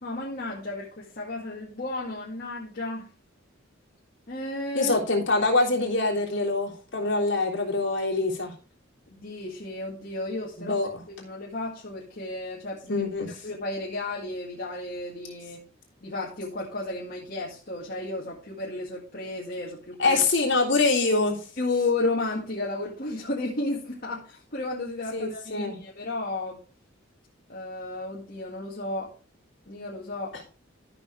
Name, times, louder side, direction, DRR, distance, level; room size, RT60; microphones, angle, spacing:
voice 1, 0.0-3.1 4.3-5.0 9.1-10.8 11.1-13.1 13.4-15.6 16.0-20.2 21.6-26.6 27.5-29.1 29.7-30.3, left 2 dB, 50° left, -5 dB, 2.0 m, -33 dB
voice 2, 4.7-8.5 10.6-10.9 12.9-13.4 20.0-21.4 25.1-25.8, left 3 dB, 65° left, -2 dB, 3.3 m, -24 dB
13.5 x 6.2 x 3.4 m, 0.37 s
head